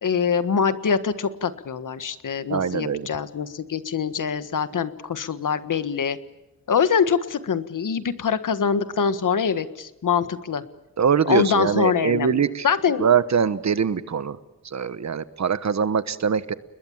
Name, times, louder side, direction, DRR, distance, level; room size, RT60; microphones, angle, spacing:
voice 1, 0.0-6.2 6.7-10.6 11.3-13.0, left 6 dB, 70° left, 12 dB, 1.6 m, -24 dB
voice 2, 2.5-3.1 11.0-12.7 13.0-14.4 14.6-16.5, right 7 dB, 55° right, 14 dB, 1.2 m, -22 dB
30.0 x 21.0 x 7.3 m, 1.0 s
wide cardioid pair, 125°, 32 cm